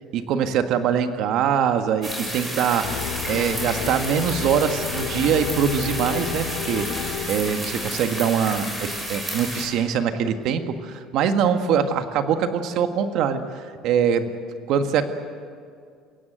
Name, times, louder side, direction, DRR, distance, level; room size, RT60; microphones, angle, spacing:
voice 1, 0.1-6.9 7.3-14.3 14.7-15.1, right 7 dB, 60° right, 7 dB, 1.7 m, -23 dB
sound 1, 2.0-9.7, right 1 dB, 15° right, 6.3 m, -31 dB
sound 2, 2.8-8.4, left 9 dB, 80° left, 2.1 m, -32 dB
28.5 x 17.0 x 8.1 m, 2.2 s
cardioid pair, 145°, 0 cm